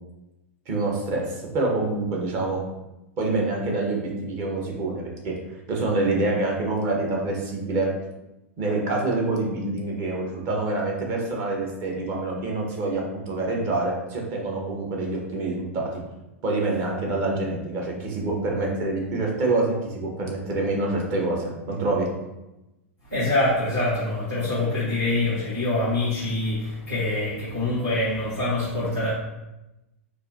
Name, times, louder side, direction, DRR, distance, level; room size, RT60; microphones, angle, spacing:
voice 1, 0.7-2.6 3.2-5.3 5.7-7.9 8.6-16.0 16.4-22.1, right 2 dB, 40° right, -1 dB, 1.0 m, -26 dB
voice 2, 23.0-29.1, left 2 dB, 90° right, -11 dB, 1.2 m, -25 dB
4.6 x 2.6 x 2.6 m, 0.98 s
figure-of-eight pair, 95°, 7 cm